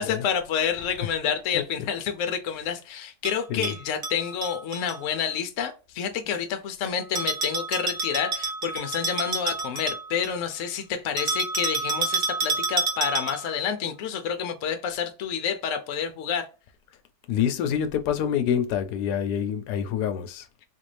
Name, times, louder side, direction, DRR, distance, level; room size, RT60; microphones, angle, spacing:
voice 1, 0.0-16.5, left 8 dB, 60° left, 0.9 m, -29 dB
Bell, 3.2-5.0 7.2-10.4 11.2-13.6, right 4 dB, 55° right, 1.1 m, -29 dB
voice 2, 17.3-20.5, left 9 dB, 85° left, 1.2 m, -26 dB
4.0 x 2.6 x 3.2 m
omnidirectional pair, 1.7 m